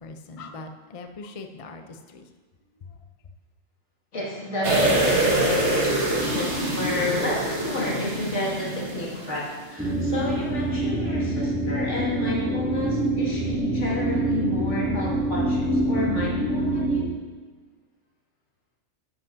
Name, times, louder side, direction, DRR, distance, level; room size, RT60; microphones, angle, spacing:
voice 1, 0.0-2.3 2.9-3.0, left 3 dB, 45° left, 6 dB, 0.5 m, -41 dB
voice 2, 4.1-17.1, left 2 dB, 65° left, -5 dB, 2.5 m, -30 dB
sound 1, 4.6-9.5 9.8-9.9, right 1 dB, 60° right, 2.0 m, -25 dB
sound 2, 9.8-17.0, right 1 dB, 5° right, 2.3 m, -25 dB
11.5 x 11.0 x 2.7 m, 1.4 s
omnidirectional pair, 1.3 m